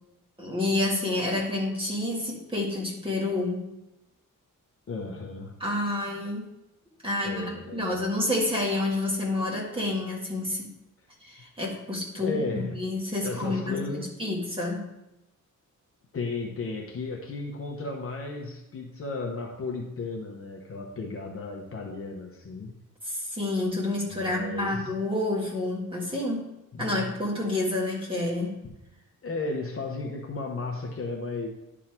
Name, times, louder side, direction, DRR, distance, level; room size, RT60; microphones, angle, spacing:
voice 1, 0.4-3.7 5.6-6.5 7.0-10.7 11.2-14.8 23.0-26.4 26.8-28.6, left 2 dB, 15° right, -3 dB, 1.7 m, -29 dB
voice 2, 4.9-5.5 7.2-8.0 12.1-12.9 13.2-14.1 16.1-22.7 24.1-24.9 26.7-27.1 29.2-31.5, left 3 dB, 45° left, 1 dB, 0.9 m, -34 dB
11.0 x 3.8 x 4.4 m, 0.92 s
wide cardioid pair, 175°, 32 cm